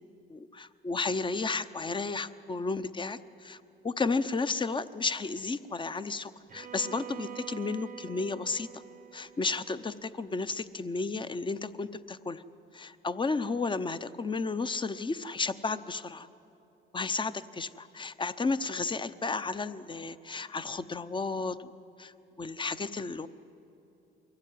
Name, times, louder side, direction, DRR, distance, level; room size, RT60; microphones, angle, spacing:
voice 1, 0.3-8.8 9.1-12.4 12.7-16.3 16.9-21.7 22.0-22.1 22.4-23.3, left 4 dB, 25° left, 13 dB, 0.7 m, -33 dB
Bowed string instrument, 6.5-10.5, right 9 dB, 45° right, 0.7 m, -46 dB
23.0 x 15.5 x 9.4 m, 2.9 s
cardioid pair, 90°, 20 cm